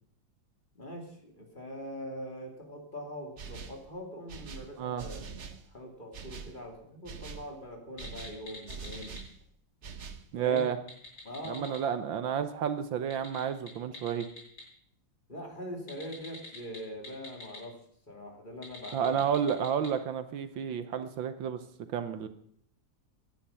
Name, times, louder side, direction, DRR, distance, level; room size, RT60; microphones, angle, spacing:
voice 1, 0.7-9.2 10.4-10.7 11.2-11.8 15.3-17.8 18.1-19.2, equal, 25° left, 2 dB, 2.9 m, -43 dB
sound 1, 3.4-3.9 4.3-5.7 6.1-6.6 7.0-7.5 8.0-9.3 9.8-10.3, right 5 dB, 45° right, 1.0 m, -44 dB
sound 2, 7.9-9.2 10.4-11.8 13.0-14.6 15.9-17.6 18.5-19.9, left 2 dB, 65° left, 6.9 m, -46 dB
voice 2, 10.3-10.8 11.5-14.3 18.9-21.6 21.9-22.3, right 8 dB, 70° right, 10 dB, 1.6 m, -31 dB
17.5 x 11.0 x 5.7 m, 0.65 s
omnidirectional pair, 2.2 m